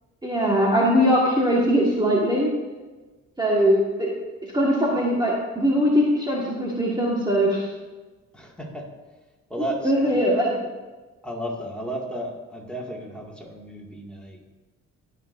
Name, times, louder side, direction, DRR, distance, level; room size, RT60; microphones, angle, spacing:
voice 1, 0.2-2.5 3.4-4.1 4.5-7.6 9.8-10.7, equal, 15° right, -4 dB, 1.8 m, -21 dB
voice 2, 8.3-8.8 9.5-10.1 11.2-14.5, right 1 dB, 5° left, -3 dB, 2.3 m, -33 dB
18.0 x 6.5 x 2.7 m, 1.3 s
cardioid pair, 90°, 30 cm